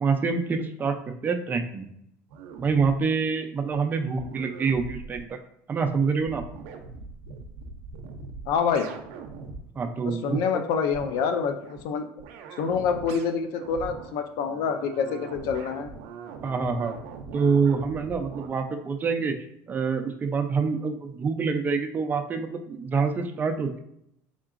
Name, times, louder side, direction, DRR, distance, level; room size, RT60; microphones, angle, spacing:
voice 1, 0.0-1.9 2.6-5.4 5.7-6.4 9.8-10.4 16.4-16.9 17.3-19.3 19.7-23.8, right 5 dB, 25° right, 6 dB, 0.4 m, -26 dB
sound 1, 2.3-3.0 3.7-3.8 4.2-5.3 5.8-5.9 6.2-9.6 10.9-11.3 11.6-11.8 12.2-18.5, right 5 dB, 75° right, 0.5 m, -41 dB
voice 2, 8.5-8.9 10.1-12.1 12.6-16.0, left 6 dB, 70° left, 7 dB, 0.5 m, -27 dB
3.8 x 3.6 x 2.5 m, 0.75 s
supercardioid pair, 120°, 7 cm